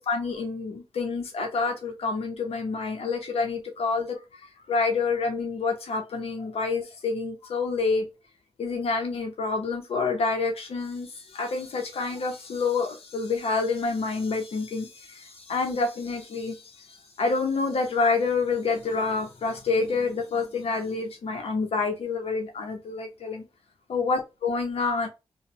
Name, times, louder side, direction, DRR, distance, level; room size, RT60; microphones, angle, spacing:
voice 1, 0.0-4.2 4.7-8.1 8.6-23.4 23.9-25.1, left 4 dB, 80° left, 0.6 m, -28 dB
3.0 x 2.1 x 2.6 m
wide cardioid pair, 145°, 10 cm